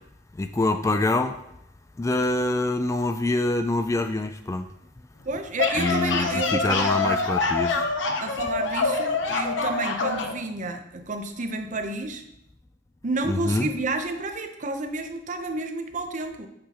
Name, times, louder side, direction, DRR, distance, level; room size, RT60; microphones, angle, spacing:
voice 1, 0.4-1.4 2.0-4.6 5.8-7.8 13.3-13.7, left 2 dB, 15° left, 8 dB, 0.3 m, -25 dB
voice 2, 5.2-7.2 8.2-12.2 13.0-16.5, right 3 dB, 45° right, 6 dB, 0.7 m, -30 dB
sound 1, 5.4-10.4, left 4 dB, 85° left, 0.8 m, -25 dB
8.4 x 5.8 x 2.9 m, 0.81 s
head